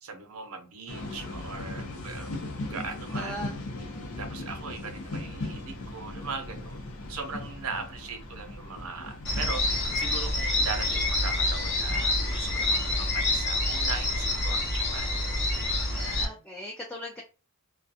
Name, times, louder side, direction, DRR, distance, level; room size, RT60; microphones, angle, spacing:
voice 1, 0.0-2.4 2.7-3.4 4.2-15.1 15.9-16.4, right 4 dB, 80° right, 0.6 m, -39 dB
sound 1, 0.9-13.4, left 2 dB, 85° left, 0.7 m, -39 dB
voice 2, 3.1-3.6 16.2-17.2, equal, 5° left, 0.3 m, -39 dB
sound 2, 9.3-16.3, left 2 dB, 50° left, 0.7 m, -27 dB
2.3 x 2.2 x 2.7 m
head